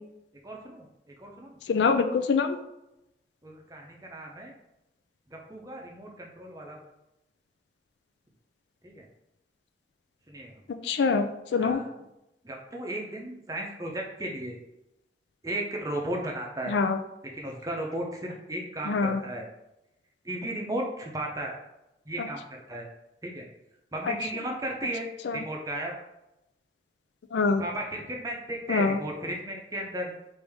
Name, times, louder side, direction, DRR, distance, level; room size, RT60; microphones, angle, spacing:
voice 1, 0.4-0.9 1.2-1.6 3.4-4.5 5.3-6.8 8.8-9.0 10.3-10.6 11.5-11.9 12.4-14.6 15.4-16.7 17.3-19.5 20.2-21.5 22.1-22.9 23.2-23.4 23.9-25.9 27.6-30.1, right 1 dB, 20° right, 0 dB, 0.6 m, -35 dB
voice 2, 1.7-2.6 10.8-11.2 11.5-11.8 16.7-17.0 18.9-19.2 25.3-25.4 27.3-27.6 28.7-29.0, left 4 dB, 75° left, 8 dB, 0.4 m, -24 dB
4.8 x 2.6 x 3.5 m, 0.90 s
head